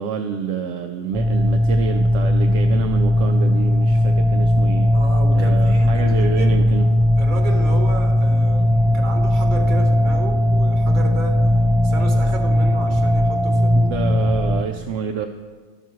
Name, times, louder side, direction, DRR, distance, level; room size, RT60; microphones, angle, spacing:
voice 1, 0.0-4.9 5.3-6.8 13.7-15.3, right 6 dB, 70° right, 5 dB, 0.9 m, -27 dB
sound 1, 1.1-14.6, left 1 dB, ahead, 0.5 m, -17 dB
voice 2, 4.9-6.6 7.2-11.4 11.8-14.0, right 2 dB, 40° right, 3 dB, 1.2 m, -32 dB
12.5 x 6.0 x 4.6 m, 1.4 s
omnidirectional pair, 1.4 m